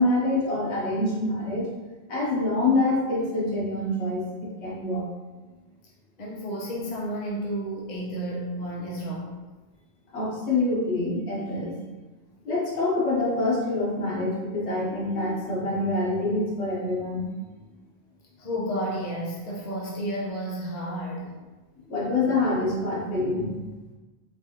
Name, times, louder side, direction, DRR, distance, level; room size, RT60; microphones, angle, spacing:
voice 1, 0.0-1.7 2.1-5.0 10.1-11.7 12.4-17.2 21.9-23.6, left 2 dB, 80° left, -5 dB, 1.2 m, -26 dB
voice 2, 6.2-9.3 18.4-21.3, equal, 45° left, -4 dB, 0.8 m, -31 dB
4.6 x 2.4 x 2.9 m, 1.2 s
omnidirectional pair, 1.1 m